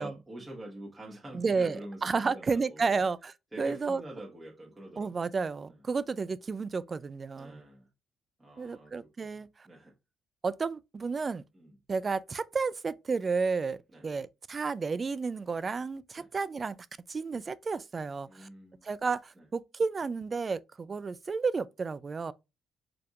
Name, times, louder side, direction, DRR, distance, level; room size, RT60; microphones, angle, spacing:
voice 1, 0.0-3.0 3.5-5.2 7.3-7.9 8.4-9.9 11.5-11.7 13.9-14.0 16.2-16.3 18.3-18.8, right 1 dB, 20° right, 1.4 m, -46 dB
voice 2, 1.3-4.0 5.0-7.6 8.6-9.7 10.4-11.4 11.9-13.8 14.0-16.8 17.1-18.5 18.8-22.3, right 4 dB, 35° right, 0.4 m, -32 dB
4.7 x 3.5 x 2.4 m
cardioid pair, 90°, 0 cm